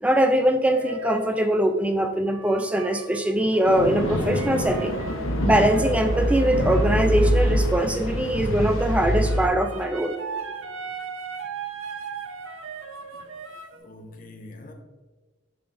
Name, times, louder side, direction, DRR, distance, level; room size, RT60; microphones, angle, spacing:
voice 1, 0.0-5.0 5.4-10.2, right 1 dB, 5° right, 0.3 m, -22 dB
sound 1, 0.7-1.4 2.2-7.9 9.1-13.8, right 4 dB, 85° right, 0.6 m, -38 dB
sound 2, 3.6-9.5, equal, 80° left, 0.8 m, -24 dB
voice 2, 13.7-14.7, left 2 dB, 40° left, 0.7 m, -44 dB
6.9 x 5.8 x 2.5 m
head